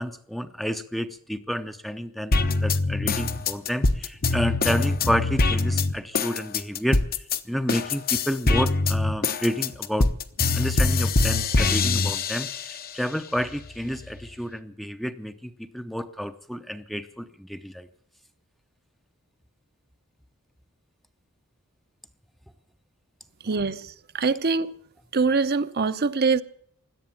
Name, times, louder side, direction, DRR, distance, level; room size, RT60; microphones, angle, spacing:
voice 1, 0.0-7.0 7.5-10.1 10.5-17.9, equal, ahead, 0.7 m, -30 dB
sound 1, 2.3-7.4 7.7-12.9 13.4-14.3, left 3 dB, 45° left, 1.0 m, -23 dB
voice 2, 23.4-24.7 25.1-26.4, right 4 dB, 45° right, 0.8 m, -24 dB
17.0 x 11.5 x 7.2 m
head